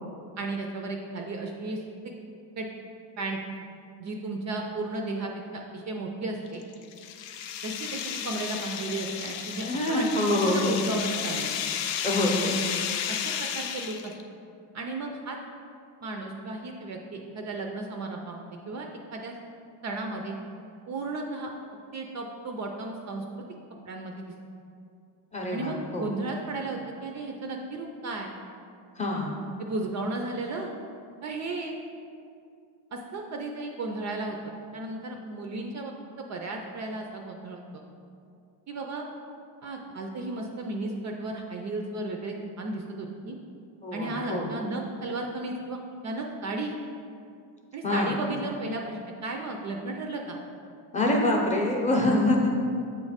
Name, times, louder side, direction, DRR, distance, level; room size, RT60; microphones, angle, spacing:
voice 1, 0.4-1.8 2.6-2.7 3.2-3.4 4.0-6.6 7.6-11.5 13.1-14.1 14.7-15.4 16.0-19.4 19.8-20.3 20.9-21.5 21.9-23.4 23.9-24.3 25.5-28.3 29.6-30.7 31.2-31.8 32.9-34.4 34.7-37.8 38.7-39.0 39.6-43.4 43.9-46.7 47.7-50.4, right 2 dB, 40° right, 2 dB, 0.4 m, -34 dB
sound 1, 6.5-14.2, left 8 dB, 75° left, 0.6 m, -33 dB
voice 2, 9.6-10.8 12.0-12.6 25.3-26.1 29.0-29.4 43.8-44.5 47.8-48.2 50.9-52.6, left 1 dB, 15° left, -1 dB, 0.6 m, -25 dB
7.8 x 3.1 x 4.9 m, 2.4 s
cardioid pair, 155°, 44 cm